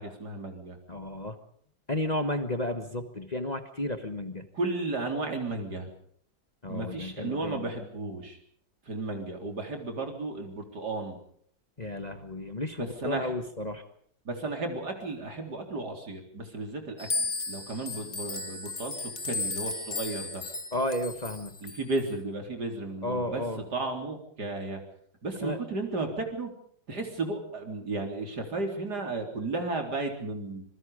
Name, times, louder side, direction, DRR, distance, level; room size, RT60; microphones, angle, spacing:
voice 1, 0.0-0.8 4.5-5.9 6.7-8.4 8.9-11.2 12.8-13.3 14.3-20.4 21.6-23.4 23.7-24.8 25.2-26.5 26.9-30.6, right 2 dB, 70° right, 4 dB, 4.4 m, -34 dB
voice 2, 0.9-1.3 1.9-4.4 6.6-7.6 11.8-13.8 20.7-21.5 23.0-23.6 25.4-25.6, left 1 dB, 25° left, 7 dB, 1.5 m, -32 dB
sound 1, 17.0-22.0, left 4 dB, 45° left, 2.1 m, -35 dB
26.0 x 22.5 x 5.1 m, 0.62 s
omnidirectional pair, 1.8 m